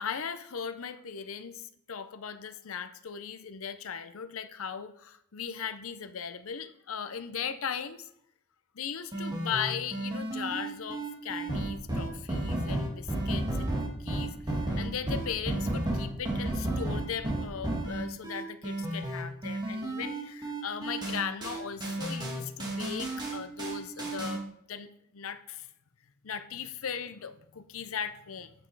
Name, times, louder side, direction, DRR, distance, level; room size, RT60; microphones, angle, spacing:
voice 1, 0.0-8.1 8.7-13.7 14.0-24.4 24.7-25.7 26.2-28.5, left 7 dB, 75° left, 11 dB, 0.6 m, -38 dB
sound 1, 9.1-24.4, right 1 dB, 20° right, 1.8 m, -32 dB
8.7 x 6.0 x 4.6 m, 0.73 s
head